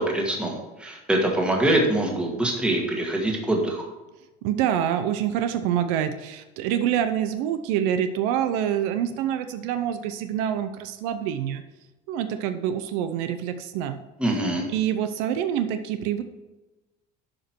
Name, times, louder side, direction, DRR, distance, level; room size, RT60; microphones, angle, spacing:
voice 1, 0.0-3.8 14.2-14.7, right 1 dB, 5° right, 0 dB, 1.6 m, -24 dB
voice 2, 4.4-11.6 12.1-14.0 14.7-16.2, right 10 dB, 70° right, 9 dB, 0.7 m, -26 dB
11.5 x 5.1 x 4.5 m, 1.1 s
cardioid pair, 160°, 19 cm